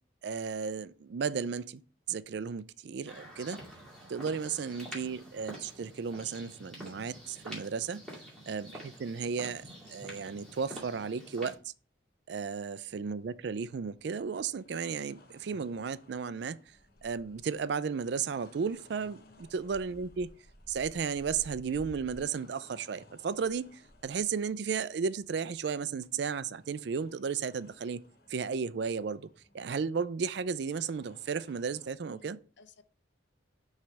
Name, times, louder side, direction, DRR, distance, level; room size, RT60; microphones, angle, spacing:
voice 1, 0.2-1.8 2.1-3.6 4.1-8.0 8.5-9.6 9.9-11.7 12.3-16.6 17.0-20.3 20.7-28.0 28.3-29.3 29.5-32.4, right 6 dB, 60° right, 0.4 m, -34 dB
sound 1, 3.1-11.6, equal, 5° left, 2.2 m, -47 dB
voice 2, 8.0-8.3 19.2-19.4 32.0-32.8, left 4 dB, 65° left, 0.6 m, -60 dB
sound 2, 12.8-31.9, left 1 dB, 50° left, 0.9 m, -58 dB
5.9 x 3.3 x 5.8 m
head